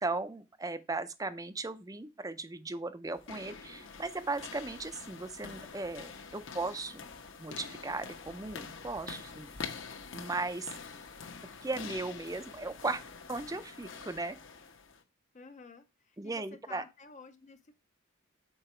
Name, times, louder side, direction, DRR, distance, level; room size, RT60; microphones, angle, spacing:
voice 1, 0.0-7.0 7.4-9.5 10.1-10.7 11.6-13.0 13.3-14.4 16.2-16.8, right 3 dB, 15° right, 0.4 m, -37 dB
sound 1, 3.1-15.0, left 5 dB, 60° left, 1.0 m, -46 dB
voice 2, 15.3-17.7, left 4 dB, 35° left, 0.5 m, -51 dB
6.8 x 4.6 x 4.3 m
head